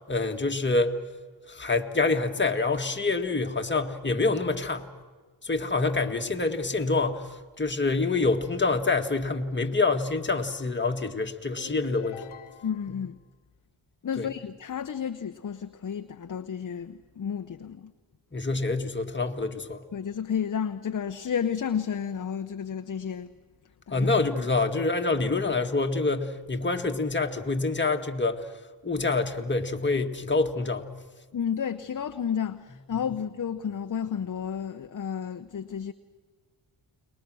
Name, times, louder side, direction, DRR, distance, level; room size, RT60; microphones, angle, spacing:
voice 1, 0.1-1.0 1.5-4.9 5.4-12.2 12.9-13.0 14.2-14.3 18.3-19.8 23.9-28.5 28.8-30.9, left 3 dB, 20° left, 2.0 m, -26 dB
sound 1, 11.6-13.0, left 10 dB, 85° left, 1.1 m, -44 dB
voice 2, 12.6-13.2 14.0-17.9 19.9-23.3 23.9-24.1 31.3-35.9, left 7 dB, 40° left, 0.9 m, -31 dB
30.0 x 21.5 x 6.3 m
cardioid pair, 65°, 48 cm